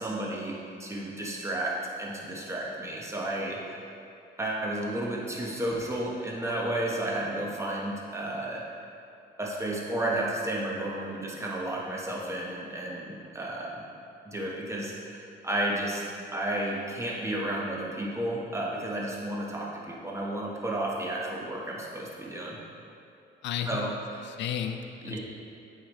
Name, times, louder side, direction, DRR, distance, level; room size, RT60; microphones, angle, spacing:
voice 1, 0.0-3.8 4.4-8.6 9.4-13.9 14.2-16.0 16.3-22.6 23.7-24.3 25.0-25.2, right 1 dB, 15° right, -3 dB, 1.3 m, -32 dB
voice 2, 23.4-23.9 24.2-25.2, left 9 dB, 65° left, 7 dB, 0.4 m, -33 dB
8.2 x 4.9 x 3.1 m, 2.7 s
cardioid pair, 90°, 20 cm